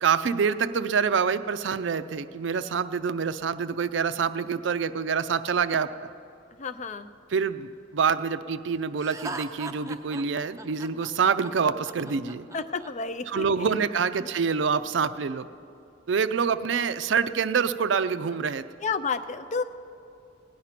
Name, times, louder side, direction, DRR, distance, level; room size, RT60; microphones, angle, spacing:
voice 1, 0.0-5.9 7.3-12.5 13.3-15.5 16.1-18.7, right 6 dB, 65° right, 13 dB, 0.4 m, -26 dB
voice 2, 6.6-7.1 12.5-13.8 14.2-14.3 18.8-19.6, left 4 dB, 35° left, 12 dB, 0.4 m, -31 dB
Laughter, 9.0-12.9, right 3 dB, 15° right, 0.5 m, -39 dB
17.5 x 9.5 x 5.8 m, 2.6 s
head